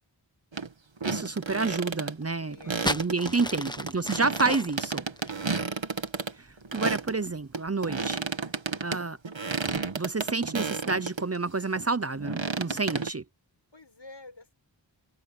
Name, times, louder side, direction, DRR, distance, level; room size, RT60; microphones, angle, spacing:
sound 1, 0.5-0.7 1.0-2.1 2.6-7.2 7.5-11.2 11.8-13.1, right 4 dB, 75° right, 1.9 m, -32 dB
voice 1, 1.1-2.6 2.8-5.0 6.4-8.2 8.8-9.2 9.6-13.2, right 3 dB, 35° right, 0.7 m, -29 dB
voice 2, 2.4-2.9 3.4-3.7 4.2-4.4 4.9-5.5 13.7-14.5, left 2 dB, 70° left, 7.6 m, -50 dB
sound 2, 2.5-6.2 7.1-7.4, left 1 dB, 10° left, 1.3 m, -34 dB
wide cardioid pair, 45°, 45 cm